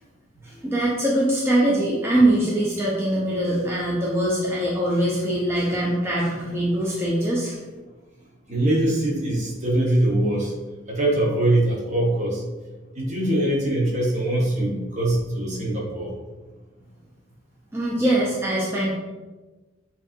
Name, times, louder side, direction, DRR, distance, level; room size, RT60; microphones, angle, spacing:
voice 1, 0.4-7.6 17.7-18.9, right 1 dB, 15° right, -6 dB, 0.6 m, -22 dB
voice 2, 8.5-10.5 10.9-12.4 13.0-16.1, right 1 dB, 40° right, -2 dB, 1.0 m, -22 dB
6.7 x 2.8 x 2.5 m, 1.2 s
head